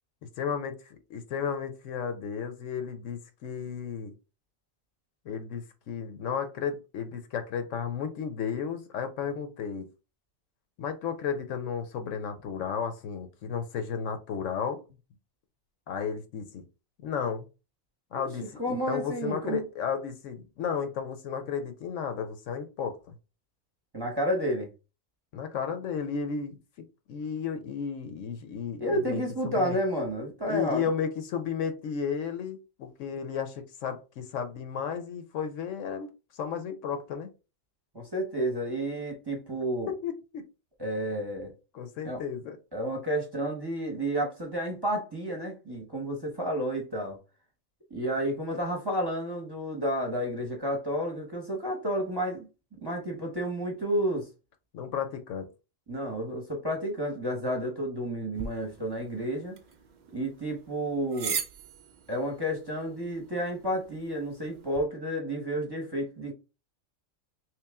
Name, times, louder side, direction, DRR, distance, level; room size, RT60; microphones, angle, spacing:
voice 1, 0.2-4.1 5.2-9.9 10.8-14.8 15.9-16.6 17.0-17.5 18.1-23.2 25.3-26.6 27.1-29.8 30.5-37.3 39.9-40.4 41.7-42.6 54.7-55.5, left 7 dB, 70° left, 1.0 m, -33 dB
voice 2, 18.6-19.6 23.9-24.7 28.8-30.9 37.9-39.9 40.8-41.5 42.0-42.2 42.7-47.2 47.9-52.5 52.8-54.3 55.9-59.6 60.1-61.4 62.1-66.3, equal, 20° right, 0.8 m, -31 dB
sound 1, 58.3-64.8, right 7 dB, 90° right, 0.4 m, -41 dB
3.1 x 3.0 x 3.4 m
omnidirectional pair, 1.4 m